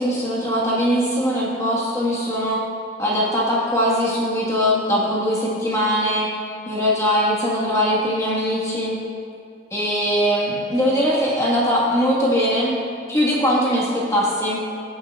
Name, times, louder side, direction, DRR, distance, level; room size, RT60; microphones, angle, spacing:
voice 1, 0.0-2.6 3.0-6.3 6.7-9.0 9.7-12.8 13.1-14.6, equal, 20° left, -5 dB, 1.6 m, -21 dB
17.5 x 9.3 x 2.4 m, 2.5 s
head